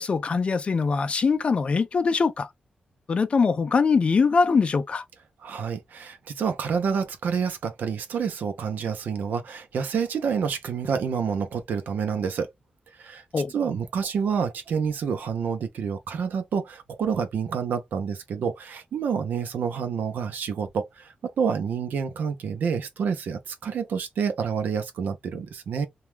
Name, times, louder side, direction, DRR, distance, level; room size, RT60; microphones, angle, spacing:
voice 1, 0.0-2.5 3.1-5.0 13.3-13.5, left 5 dB, 40° left, 0.3 m, -22 dB
voice 2, 5.4-12.5 13.0-13.2 13.5-25.9, right 6 dB, 90° right, 0.5 m, -28 dB
2.3 x 2.1 x 3.1 m
wide cardioid pair, 135°, 3 cm